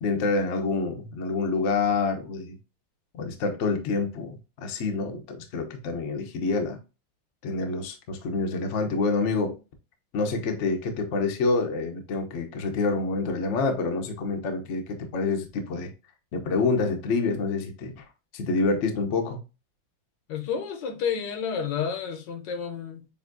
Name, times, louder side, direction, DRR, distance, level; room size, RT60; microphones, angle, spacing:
voice 1, 0.0-2.6 3.1-6.8 7.4-9.6 10.1-15.9 16.3-18.0 18.3-19.4, left 3 dB, 55° left, 0.8 m, -27 dB
voice 2, 20.3-23.1, left 7 dB, 70° left, 1.4 m, -30 dB
7.0 x 2.8 x 2.5 m
omnidirectional pair, 2.1 m